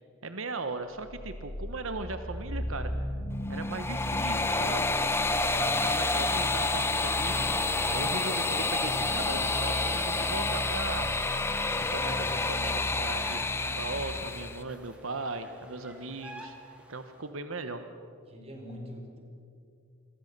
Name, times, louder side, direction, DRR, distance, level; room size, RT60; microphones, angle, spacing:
voice 1, 0.2-2.9 3.5-5.0 5.3-11.1 11.7-13.4 13.7-16.6 16.9-17.8, right 3 dB, 75° right, 8 dB, 1.2 m, -38 dB
sound 1, 1.0-14.2, left 1 dB, 50° left, 3.1 m, -37 dB
sound 2, 3.5-14.6, left 3 dB, 10° left, 0.9 m, -29 dB
sound 3, 10.6-17.2, right 1 dB, 5° right, 3.0 m, -50 dB
voice 2, 18.3-19.2, equal, 30° right, 3 dB, 4.0 m, -44 dB
29.0 x 22.0 x 6.8 m, 2.6 s
head